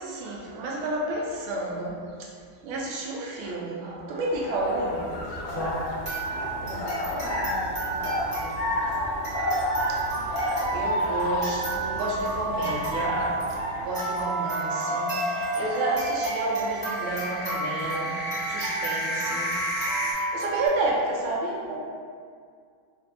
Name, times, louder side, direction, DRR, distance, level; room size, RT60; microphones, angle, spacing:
voice 1, 0.0-2.3 2.6-5.2 7.8-8.0 9.9-10.2 10.7-13.2 13.8-18.2 18.4-19.5 20.1-21.8, right 2 dB, 85° right, -2 dB, 1.4 m, -31 dB
sound 1, 4.2-14.0, left 1 dB, 75° left, 1.3 m, -30 dB
sound 2, 5.3-6.1 6.4-6.5 6.9-7.0 11.1-20.1, equal, 50° left, 0.7 m, -33 dB
sound 3, 5.5-20.7, right 3 dB, 15° right, 1.1 m, -32 dB
voice 2, 6.3-9.0, equal, 60° right, -6 dB, 0.8 m, -40 dB
4.0 x 2.5 x 2.6 m, 2.1 s
omnidirectional pair, 2.3 m